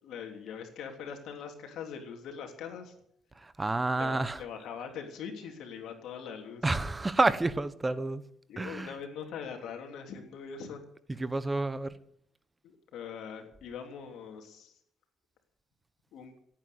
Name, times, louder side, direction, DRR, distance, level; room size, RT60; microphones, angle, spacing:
voice 1, 0.0-2.9 4.0-6.7 8.5-10.8 11.1-11.2 12.6-14.7 16.1-16.3, left 7 dB, 80° left, 3.2 m, -42 dB
voice 2, 3.4-4.4 6.6-8.2 8.6-8.9 11.2-11.9, right 2 dB, 20° right, 1.0 m, -29 dB
17.5 x 9.2 x 8.4 m
cardioid pair, 90°, 0 cm